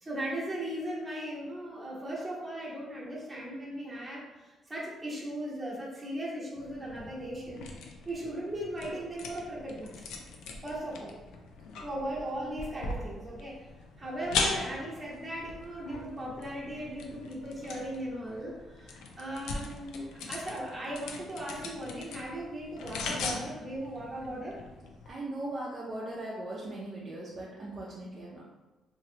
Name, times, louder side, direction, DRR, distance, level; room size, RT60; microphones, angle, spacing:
voice 1, 0.0-7.7 8.0-10.0 10.6-11.2 11.8-13.6 14.0-24.6, right 1 dB, 20° right, -5 dB, 1.0 m, -38 dB
sound 1, 6.6-25.1, left 4 dB, 90° left, 0.4 m, -40 dB
voice 2, 25.1-28.4, right 1 dB, 35° right, -6 dB, 0.6 m, -39 dB
3.0 x 2.7 x 2.7 m, 1.2 s
cardioid pair, 115°, 0 cm